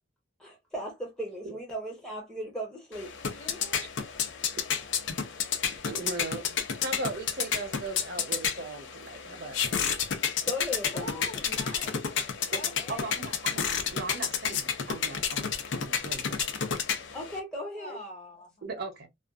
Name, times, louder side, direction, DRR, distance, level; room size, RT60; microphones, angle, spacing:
voice 1, 0.4-3.1 10.4-11.3 17.1-18.0, equal, 5° left, 0.6 m, -37 dB
sound 1, 2.9-17.4, left 7 dB, 70° left, 0.5 m, -31 dB
voice 2, 3.3-4.4 10.9-12.1 12.5-13.2 17.8-18.6, left 1 dB, 35° left, 1.2 m, -45 dB
voice 3, 5.9-9.8 12.5-12.6 12.9-13.6 13.9-16.5 18.6-19.1, right 3 dB, 60° right, 0.6 m, -38 dB
2.4 x 2.3 x 2.2 m
head